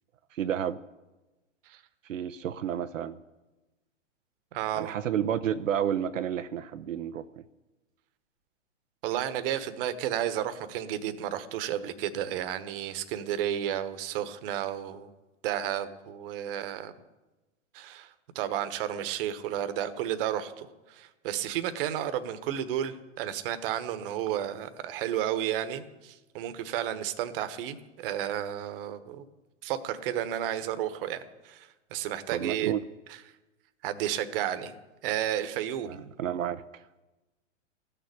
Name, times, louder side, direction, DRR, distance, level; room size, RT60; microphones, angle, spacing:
voice 1, 0.3-0.8 2.0-3.2 4.8-7.3 32.3-32.8 35.9-36.8, right 9 dB, 90° right, 0.7 m, -31 dB
voice 2, 4.5-4.9 9.0-15.1 15.4-16.9 17.7-29.2 29.6-32.7 33.1-33.2 33.8-34.7 35.0-36.0, right 11 dB, 45° right, 1.2 m, -32 dB
14.5 x 6.8 x 9.8 m
hypercardioid pair, 130°, 37 cm